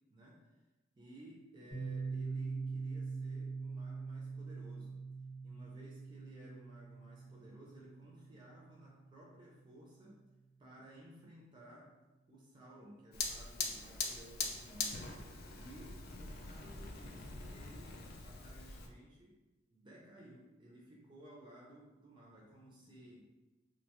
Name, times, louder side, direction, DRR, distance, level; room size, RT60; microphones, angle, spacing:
voice 1, 0.1-0.4 1.0-5.0 5.4-10.2 10.6-11.9 12.3-15.1 15.6-19.3 19.7-23.3, right 1 dB, 25° right, -4 dB, 0.4 m, -57 dB
Piano, 1.7-9.1, right 4 dB, 90° left, 1.5 m, -43 dB
Fire, 13.1-18.9, left 4 dB, 55° left, 0.3 m, -42 dB
2.4 x 2.2 x 2.9 m, 1.1 s
head